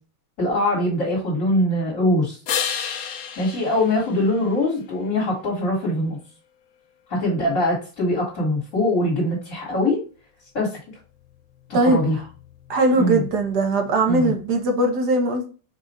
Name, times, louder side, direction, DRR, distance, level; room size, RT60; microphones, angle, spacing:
voice 1, 0.4-2.4 3.4-6.2 7.1-10.0 10.5-10.7 11.7-12.2 13.0-13.2 14.1-14.3, left 1 dB, 50° left, -5 dB, 2.1 m, -22 dB
sound 1, 2.5-5.0 10.8-14.8, left 8 dB, 65° left, 0.8 m, -34 dB
voice 2, 12.7-15.5, right 2 dB, 75° right, 3 dB, 1.6 m, -20 dB
4.8 x 2.5 x 4.2 m, 0.36 s
omnidirectional pair, 1.8 m